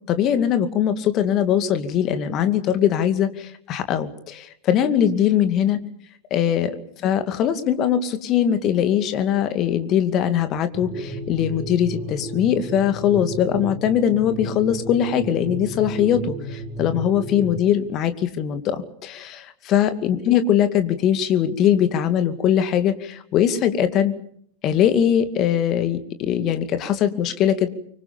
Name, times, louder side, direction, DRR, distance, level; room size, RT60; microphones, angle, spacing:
voice 1, 0.1-5.8 6.3-6.7 7.0-24.1 24.6-27.7, left 9 dB, 35° left, 9 dB, 2.3 m, -21 dB
sound 1, 10.7-17.6, right 1 dB, 25° right, 3.6 m, -33 dB
25.0 x 24.0 x 7.1 m, 0.66 s
figure-of-eight pair, 90°, 0 cm